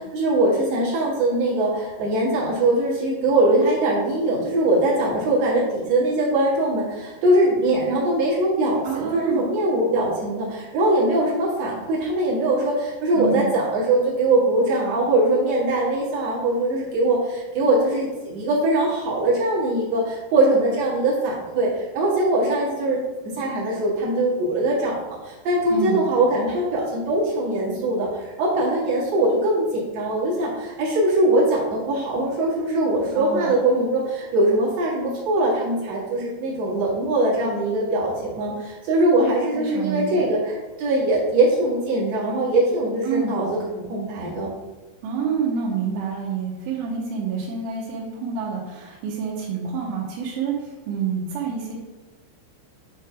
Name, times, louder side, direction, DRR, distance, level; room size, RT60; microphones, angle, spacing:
voice 1, 0.0-23.0 23.4-44.5, right 1 dB, 55° right, -6 dB, 1.9 m, -22 dB
voice 2, 8.8-9.5 13.1-13.5 25.7-26.0 33.2-33.5 39.5-40.3 43.0-43.4 45.0-51.7, right 6 dB, 80° right, -6 dB, 3.4 m, -28 dB
9.1 x 3.2 x 4.7 m, 1.2 s
omnidirectional pair, 5.8 m